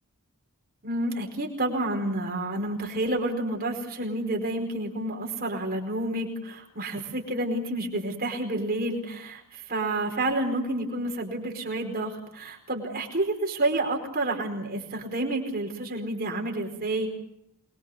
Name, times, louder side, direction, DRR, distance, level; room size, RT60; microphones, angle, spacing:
voice 1, 0.8-17.1, right 1 dB, 45° right, 1 dB, 4.8 m, -29 dB
27.5 x 22.0 x 6.9 m, 0.79 s
head